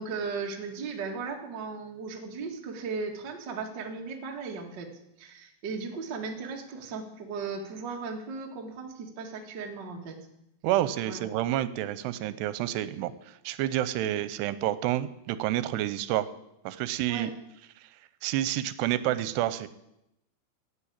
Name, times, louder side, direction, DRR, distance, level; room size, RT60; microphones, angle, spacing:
voice 1, 0.0-4.9 5.2-10.2 11.1-11.3 17.1-17.3, right 4 dB, 40° right, 1 dB, 1.6 m, -36 dB
voice 2, 10.6-13.1 13.4-16.3 16.7-17.3 18.2-19.7, right 13 dB, 85° right, 14 dB, 2.8 m, -29 dB
16.0 x 8.9 x 8.6 m, 0.84 s
omnidirectional pair, 4.8 m